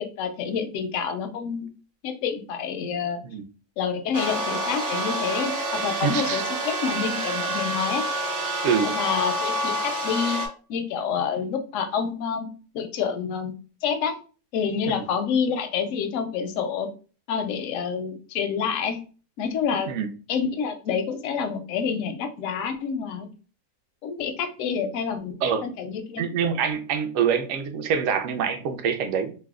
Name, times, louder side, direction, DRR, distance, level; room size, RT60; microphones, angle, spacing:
voice 1, 0.0-1.7 2.0-3.2 3.8-8.0 8.8-10.4 10.7-13.5 13.8-14.2 14.5-16.9 17.3-19.0 19.4-19.9 20.3-23.3 24.0-26.3, left 6 dB, 70° left, 6 dB, 0.8 m, -28 dB
sound 1, 4.1-10.5, right 1 dB, 55° right, 1.0 m, -28 dB
voice 2, 6.0-6.4 8.6-8.9 19.9-20.1 25.4-25.7 26.2-29.4, right 7 dB, 75° right, 6 dB, 0.7 m, -25 dB
2.7 x 2.1 x 3.5 m, 0.37 s
omnidirectional pair, 1.7 m